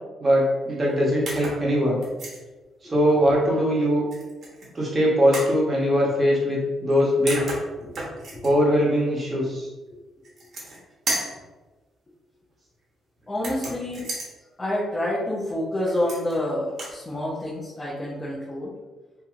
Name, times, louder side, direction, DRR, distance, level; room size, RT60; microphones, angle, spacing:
voice 1, 0.2-2.0 2.8-4.0 4.7-7.4 8.4-9.7, equal, 25° right, -4 dB, 1.0 m, -21 dB
sound 1, 1.3-1.6 2.0-2.4 4.1-4.7 5.3-5.6 6.9-7.0 7.3-8.5 10.2-10.8 11.1-11.4 13.4-14.3 15.9-16.4 16.7-17.0, right 2 dB, 55° right, 0.9 m, -32 dB
voice 2, 13.3-14.1 14.6-18.7, left 1 dB, 25° left, -7 dB, 0.7 m, -28 dB
2.7 x 2.6 x 2.4 m, 1.2 s
cardioid pair, 90°, 0 cm